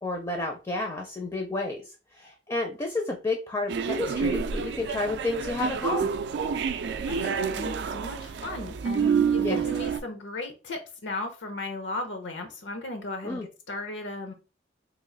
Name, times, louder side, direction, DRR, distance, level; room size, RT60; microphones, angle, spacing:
voice 1, 0.0-6.1 9.4-9.7 13.2-13.5, left 2 dB, 20° left, 0.4 m, -31 dB
sound 1, 3.7-10.0, right 6 dB, 65° right, 0.3 m, -28 dB
voice 2, 7.0-13.4 13.7-14.3, left 2 dB, 75° left, 0.7 m, -36 dB
3.0 x 2.3 x 3.8 m
head